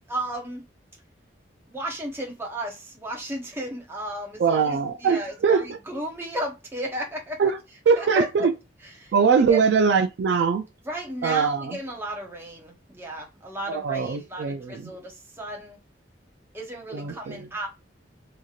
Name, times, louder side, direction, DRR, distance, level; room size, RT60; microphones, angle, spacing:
voice 1, 0.1-0.6 1.7-7.4 8.0-8.5 9.0-9.1 9.5-9.6 10.8-15.8 16.5-17.7, equal, 15° right, 0.7 m, -34 dB
voice 2, 4.4-5.8 7.4-7.6 7.9-8.5 9.1-10.7 11.2-11.8 13.7-14.9 16.9-17.5, right 5 dB, 65° right, 0.3 m, -22 dB
3.0 x 2.6 x 2.4 m
head